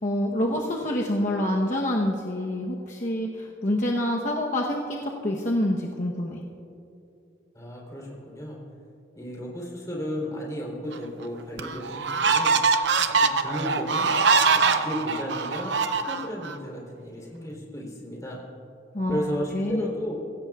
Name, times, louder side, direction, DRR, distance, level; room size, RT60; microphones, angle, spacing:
voice 1, 0.0-6.4 18.9-19.3 19.5-19.8, left 1 dB, 45° left, -2 dB, 1.0 m, -27 dB
voice 2, 7.5-8.6 9.1-12.6 13.1-14.1 14.5-18.4 19.1-20.1, equal, 20° left, -3 dB, 3.6 m, -34 dB
sound 1, 10.9-11.0 11.6-16.5, right 4 dB, 75° right, 0.7 m, -23 dB
24.0 x 16.5 x 2.4 m, 2.7 s
head